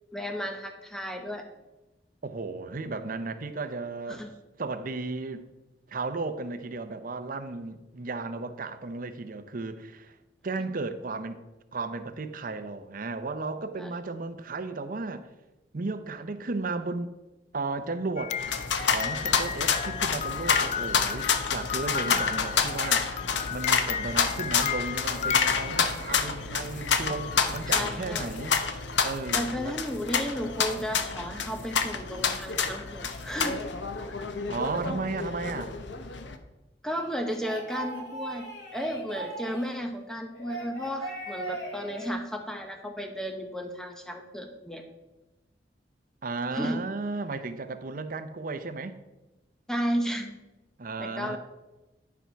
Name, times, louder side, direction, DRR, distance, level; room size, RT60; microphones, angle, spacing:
voice 1, 0.1-1.4 4.1-4.3 13.8-13.9 22.0-22.3 27.6-28.3 29.3-33.6 36.8-44.8 46.5-46.9 49.7-50.3 51.0-51.4, equal, 5° left, 0.9 m, -33 dB
voice 2, 2.2-4.2 4.6-5.4 5.9-10.2 10.4-11.4 11.7-15.3 15.7-17.1 17.5-18.4 18.8-28.6 29.0-29.8 34.5-35.7 46.2-49.0 50.8-51.4, right 3 dB, 50° right, 0.7 m, -34 dB
sound 1, 18.2-26.2 27.1-27.6, left 8 dB, 40° left, 0.3 m, -34 dB
sound 2, 18.4-36.3, left 6 dB, 85° left, 0.8 m, -29 dB
sound 3, 36.9-39.8 40.3-42.1, right 2 dB, 70° left, 2.6 m, -39 dB
10.5 x 4.6 x 5.7 m
head